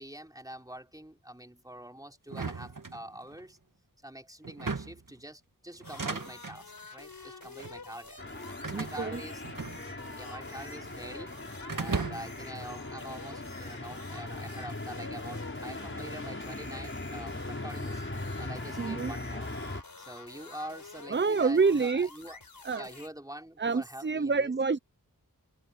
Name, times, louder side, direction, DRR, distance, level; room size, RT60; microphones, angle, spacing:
voice 1, 0.0-3.6 4.0-9.4 10.1-11.4 11.7-18.0 18.4-19.5 20.0-22.4 22.8-24.5, right 1 dB, 10° right, 3.9 m, -45 dB
sound 1, 2.3-3.4 4.4-5.1 5.8-6.6 7.4-7.8 8.6-10.2 10.4-11.2 11.7-12.5, right 4 dB, 65° right, 2.1 m, -37 dB
sound 2, 5.8-23.1, left 3 dB, 75° left, 4.1 m, -48 dB
sound 3, 8.2-19.8, left 2 dB, 35° left, 6.6 m, -40 dB
voice 2, 8.7-9.2 18.8-19.1 21.1-22.1 22.6-22.9 23.6-24.8, right 4 dB, 35° right, 0.7 m, -27 dB
wide cardioid pair, 60°, 34 cm